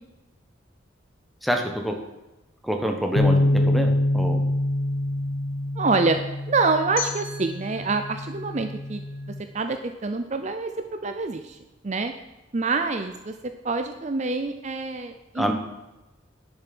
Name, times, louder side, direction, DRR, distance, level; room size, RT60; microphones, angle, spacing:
voice 1, 1.4-2.0 2.6-4.4 15.3-15.5, equal, ahead, 3 dB, 1.2 m, -26 dB
sound 1, 3.2-9.4, left 1 dB, 50° left, 0.8 m, -25 dB
voice 2, 5.8-6.2 6.5-9.0 9.5-11.6 11.8-12.1 12.5-13.3 13.6-15.5, right 3 dB, 35° right, 8 dB, 0.5 m, -26 dB
sound 2, 7.0-9.9, left 6 dB, 75° left, 2.1 m, -39 dB
10.5 x 6.8 x 6.0 m, 1.0 s
head